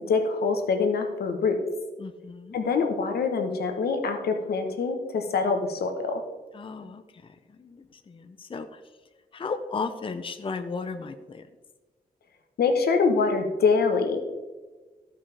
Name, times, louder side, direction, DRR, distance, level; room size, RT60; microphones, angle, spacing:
voice 1, 0.1-1.6 2.5-6.2 12.6-14.2, left 4 dB, 85° left, 5 dB, 1.2 m, -24 dB
voice 2, 2.0-2.6 6.5-7.0 7.6-8.7 9.3-11.5, left 4 dB, 35° left, 9 dB, 0.6 m, -35 dB
14.5 x 5.5 x 3.4 m, 1.3 s
cardioid pair, 90°, 16 cm